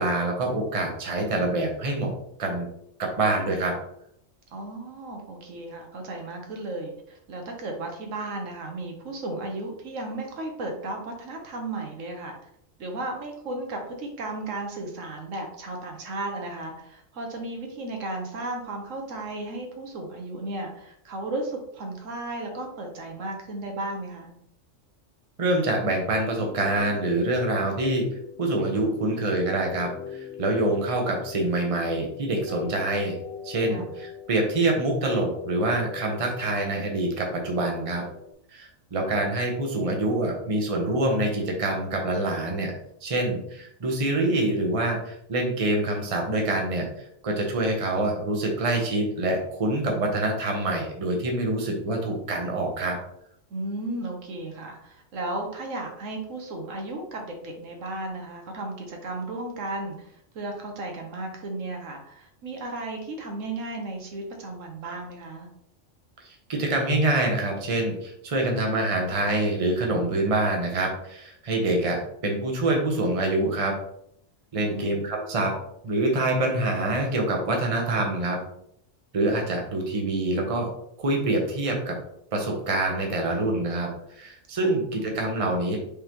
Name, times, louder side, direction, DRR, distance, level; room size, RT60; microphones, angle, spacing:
voice 1, 0.0-2.1 2.4-2.7 3.0-3.8 25.4-28.1 28.4-33.2 33.4-38.0 38.5-42.7 43.0-53.0 66.2-73.8 74.5-75.5 75.8-78.4 79.1-80.7 81.0-82.0 82.3-85.8, right 2 dB, 30° right, 1 dB, 0.9 m, -26 dB
voice 2, 4.5-12.4 12.8-24.3 33.7-33.9 53.5-65.5 74.5-75.0 84.6-85.1, right 2 dB, 90° right, 2 dB, 1.3 m, -35 dB
sound 1, 26.3-38.3, left 7 dB, 85° left, 1.0 m, -41 dB
5.1 x 3.5 x 3.0 m, 0.72 s
omnidirectional pair, 1.3 m